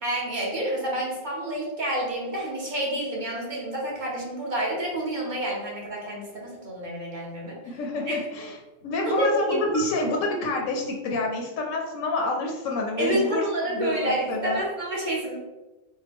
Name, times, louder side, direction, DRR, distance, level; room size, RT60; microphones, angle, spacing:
voice 1, 0.0-7.6 8.1-8.2 9.1-9.6 10.0-10.1 13.0-15.4, right 1 dB, 40° right, -4 dB, 0.9 m, -28 dB
voice 2, 7.6-8.6 8.8-14.6, left 2 dB, 85° left, 1 dB, 1.0 m, -28 dB
4.3 x 2.2 x 3.4 m, 1.1 s
omnidirectional pair, 1.3 m